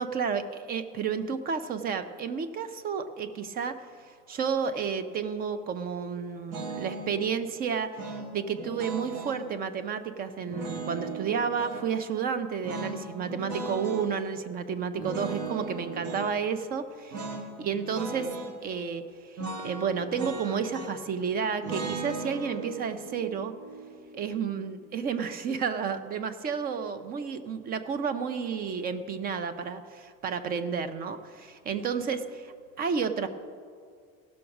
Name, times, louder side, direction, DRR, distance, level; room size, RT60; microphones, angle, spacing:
voice 1, 0.0-18.3 18.6-23.5 24.1-32.2 32.8-33.3, right 6 dB, 30° right, 11 dB, 0.5 m, -31 dB
sound 1, 6.5-7.2 8.0-9.4 10.5-11.9 12.6-14.1 15.0-16.3 17.1-17.5 17.7-18.5 19.4-21.1 21.6-24.7, right 3 dB, 60° right, 1.5 m, -37 dB
16.5 x 6.3 x 5.8 m, 2.1 s
cardioid pair, 180°, 33 cm